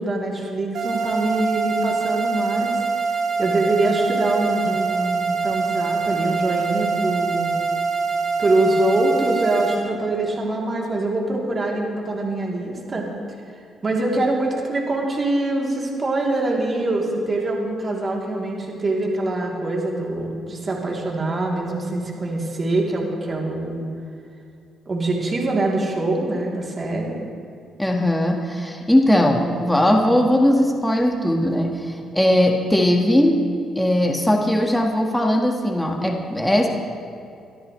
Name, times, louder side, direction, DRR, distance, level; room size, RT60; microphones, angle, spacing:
voice 1, 0.0-2.8 3.4-7.5 8.4-13.1 13.8-23.8 24.9-27.1, right 2 dB, 35° right, -2 dB, 3.3 m, -24 dB
sound 1, 0.7-9.8, right 4 dB, 75° right, 3.9 m, -24 dB
voice 2, 27.8-33.4 33.8-36.7, left 1 dB, 5° left, 1 dB, 1.8 m, -19 dB
23.5 x 13.0 x 3.3 m, 2.5 s
cardioid pair, 90°, 0 cm